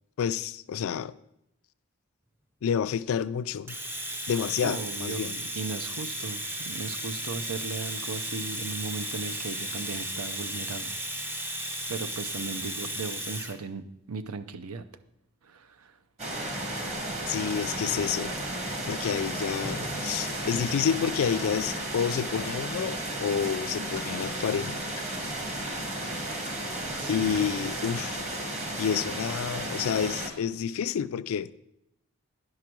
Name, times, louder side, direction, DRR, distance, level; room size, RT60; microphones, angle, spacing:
voice 1, 0.2-1.2 2.6-3.8 4.3-5.3 17.3-18.3 18.9-24.8 27.1-28.2 28.8-31.5, left 7 dB, 75° left, 0.3 m, -29 dB
Domestic sounds home sounds, 3.7-13.6, right 1 dB, 10° right, 0.5 m, -35 dB
voice 2, 4.6-11.0 11.5-14.8 15.4-16.0 27.0-27.9, right 4 dB, 85° right, 0.6 m, -37 dB
sound 1, 16.2-30.3, right 1 dB, 30° right, 1.2 m, -33 dB
10.5 x 4.8 x 6.1 m
head